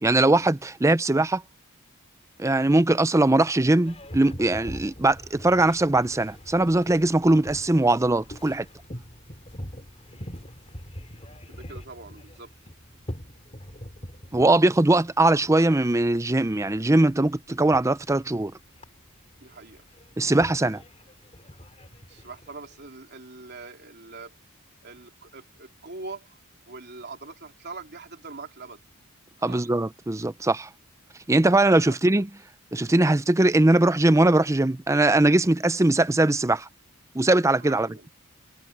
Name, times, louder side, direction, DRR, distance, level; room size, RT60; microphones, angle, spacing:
voice 1, 0.0-1.4 2.4-8.7 14.3-18.5 20.2-20.8 29.4-30.7 31.3-32.3 32.7-36.7 37.1-37.9, right 2 dB, 15° right, 0.5 m, -21 dB
Boat Water vehicle, 3.8-22.9, equal, 30° left, 3.5 m, -44 dB
voice 2, 11.5-12.5 19.4-19.8 22.1-24.3 24.8-26.4 26.7-28.8 29.4-29.7 31.9-32.0 37.6-38.1, right 3 dB, 50° right, 3.1 m, -42 dB
head